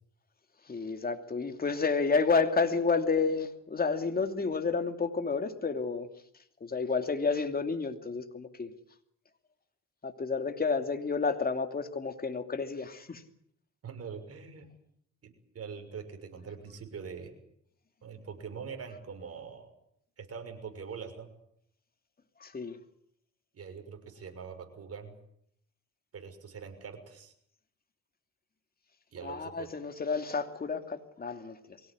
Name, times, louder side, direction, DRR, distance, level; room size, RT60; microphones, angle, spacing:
voice 1, 0.6-6.1 6.3-8.7 10.0-13.2 22.4-22.8 29.2-31.8, left 4 dB, 30° left, 7 dB, 2.8 m, -30 dB
voice 2, 13.8-14.7 15.2-17.3 18.0-19.7 20.2-21.3 23.5-25.1 26.1-27.3 29.1-29.7, right 6 dB, 50° right, 6 dB, 6.5 m, -43 dB
24.0 x 18.0 x 9.7 m, 0.71 s
cardioid pair, 90°, 30 cm